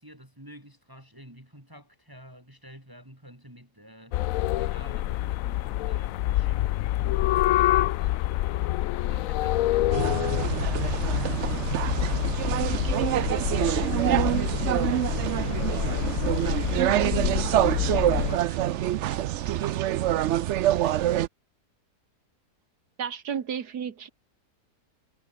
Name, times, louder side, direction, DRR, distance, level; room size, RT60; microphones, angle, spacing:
voice 1, 0.0-8.3 9.1-17.2 17.4-21.2, equal, 15° right, 5.6 m, -49 dB
sound 1, 4.1-18.4, left 15 dB, 70° left, 0.9 m, -27 dB
sound 2, 9.9-21.3, right 13 dB, 65° right, 0.7 m, -26 dB
voice 2, 23.0-24.1, right 7 dB, 85° right, 2.0 m, -32 dB
omnidirectional pair, 1.6 m